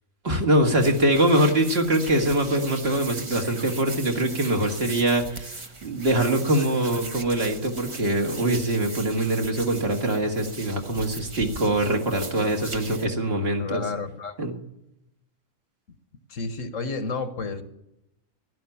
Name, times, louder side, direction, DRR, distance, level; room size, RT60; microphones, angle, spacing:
voice 1, 0.2-13.8 14.4-14.6, right 1 dB, 50° right, 3 dB, 2.2 m, -23 dB
sound 1, 0.6-13.1, right 3 dB, 25° right, 1.0 m, -39 dB
voice 2, 13.6-14.5 16.3-17.6, left 4 dB, 70° left, 10 dB, 1.5 m, -31 dB
15.5 x 12.0 x 7.1 m, 0.87 s
omnidirectional pair, 1.4 m